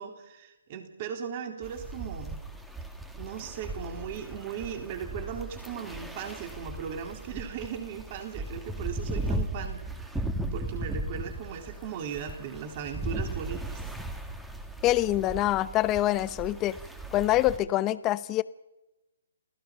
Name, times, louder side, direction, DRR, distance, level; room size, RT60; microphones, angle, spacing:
voice 1, 0.0-2.5 3.1-10.3 10.5-13.8, right 7 dB, 35° right, 5 dB, 3.7 m, -38 dB
sound 1, 1.6-17.6, right 1 dB, 5° right, 1.9 m, -37 dB
voice 2, 14.8-16.8 17.1-18.4, left 15 dB, 20° left, 16 dB, 0.8 m, -25 dB
29.0 x 17.0 x 5.8 m, 0.99 s
hypercardioid pair, 155°, 0 cm